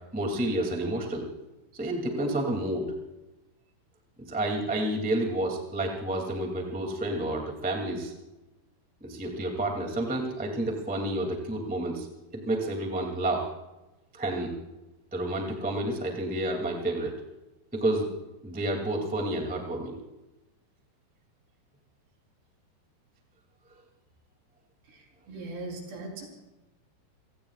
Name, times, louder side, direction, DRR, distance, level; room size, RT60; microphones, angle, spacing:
voice 1, 0.1-1.3 1.7-2.9 4.3-8.1 9.0-13.5 14.1-14.5 15.1-17.1 17.7-18.1 18.4-20.0, right 1 dB, 5° right, 1 dB, 0.8 m, -30 dB
voice 2, 25.3-26.3, right 2 dB, 60° right, 0 dB, 5.9 m, -39 dB
30.0 x 18.5 x 2.5 m, 1.0 s
omnidirectional pair, 5.6 m